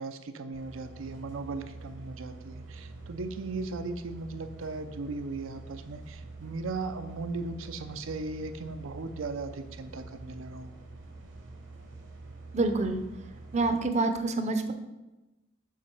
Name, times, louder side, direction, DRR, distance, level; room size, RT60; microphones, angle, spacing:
voice 1, 0.0-10.7, right 3 dB, 90° right, 9 dB, 0.5 m, -37 dB
sound 1, 0.5-13.8, right 2 dB, 65° right, 0.9 m, -46 dB
voice 2, 12.5-13.0 13.5-14.7, right 3 dB, 35° right, 8 dB, 0.5 m, -27 dB
7.3 x 4.0 x 4.5 m, 1.1 s
head